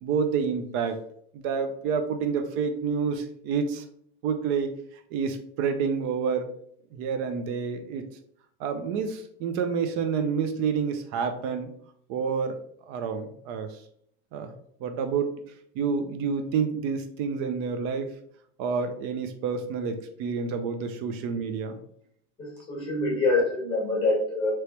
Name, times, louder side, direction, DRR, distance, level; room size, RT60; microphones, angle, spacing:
voice 1, 0.0-1.0 1.3-3.8 4.2-4.7 5.1-6.5 6.9-8.0 8.6-11.7 12.1-13.8 14.3-14.5 14.8-15.3 15.7-18.1 18.6-21.8, right 6 dB, 45° right, 7 dB, 0.5 m, -28 dB
voice 2, 22.4-24.5, left 2 dB, 15° left, -1 dB, 1.2 m, -25 dB
3.3 x 3.0 x 2.9 m, 0.65 s
cardioid pair, 160°, 30 cm